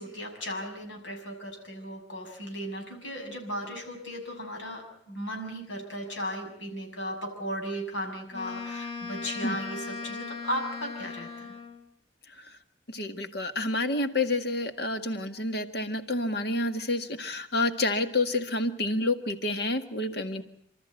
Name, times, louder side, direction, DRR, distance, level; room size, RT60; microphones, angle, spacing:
voice 1, 0.0-11.5, equal, 85° left, 2 dB, 6.6 m, -36 dB
Wind instrument woodwind instrument, 8.3-11.9, left 4 dB, 30° left, 3.7 m, -38 dB
voice 2, 12.9-20.4, left 2 dB, 60° left, 8 dB, 1.8 m, -29 dB
29.0 x 13.5 x 9.0 m, 0.73 s
head